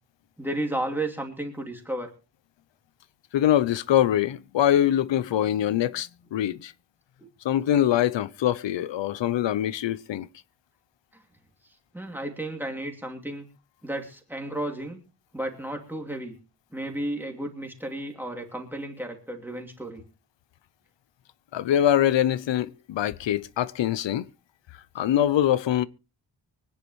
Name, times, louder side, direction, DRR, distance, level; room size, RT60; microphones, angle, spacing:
voice 1, 0.4-2.1 11.1-11.2 11.9-13.5 13.8-15.0 15.3-16.3 16.7-20.1, right 1 dB, 5° right, 2.6 m, -33 dB
voice 2, 3.3-6.7 7.4-10.3 21.5-24.3 24.9-25.9, left 11 dB, 90° left, 0.8 m, -23 dB
24.0 x 10.0 x 3.1 m
wide cardioid pair, 160°, 43 cm